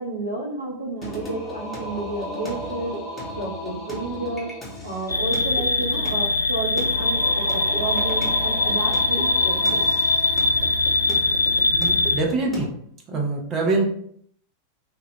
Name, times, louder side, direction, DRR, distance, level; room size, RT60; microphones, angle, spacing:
voice 1, 0.0-3.0 3.4-4.5 4.8-9.9, right 2 dB, 80° right, -1 dB, 0.5 m, -31 dB
Singing, 1.0-12.6, equal, 5° left, 1.0 m, -35 dB
sound 1, 5.1-12.2, left 3 dB, 85° left, 0.4 m, -22 dB
voice 2, 11.7-12.7 13.1-13.9, right 3 dB, 30° right, 0 dB, 0.6 m, -24 dB
2.3 x 2.1 x 3.3 m, 0.66 s
figure-of-eight pair, 90°, 0 cm